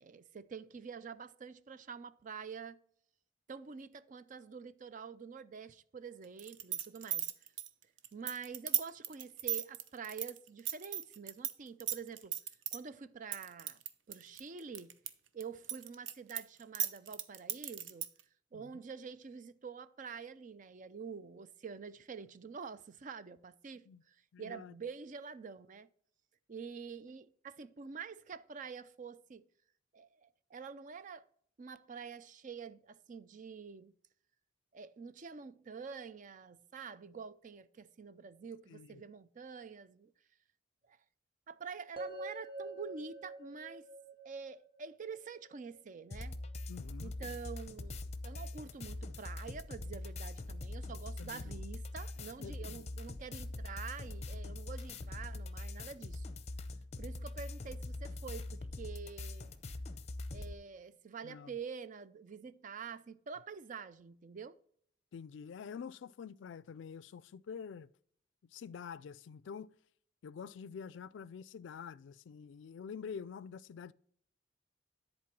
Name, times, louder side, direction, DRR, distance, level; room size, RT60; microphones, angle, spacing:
voice 1, 0.0-2.8 3.5-7.2 8.1-12.3 12.7-13.8 14.1-14.9 15.3-18.1 18.5-25.9 26.5-29.4 29.9-31.3 31.6-33.9 34.7-40.1 40.9-41.0 41.5-43.8 44.2-46.4 47.0-56.2 57.0-59.5 60.3-64.6, right 5 dB, 45° right, 0.4 m, -47 dB
sound 1, 6.4-11.5 11.8-12.8 13.3-15.1 15.4-18.2, right 10 dB, 90° right, 0.7 m, -36 dB
voice 2, 24.3-24.7 38.7-39.0 46.7-47.2 51.2-51.6 52.4-52.9 61.2-61.5 65.1-67.9 68.5-69.7 70.2-73.9, left 6 dB, 75° left, 0.3 m, -47 dB
sound 2, 42.0-46.1, right 2 dB, 30° right, 1.2 m, -47 dB
sound 3, 46.1-60.5, left 2 dB, 35° left, 0.7 m, -43 dB
10.5 x 4.4 x 5.9 m
head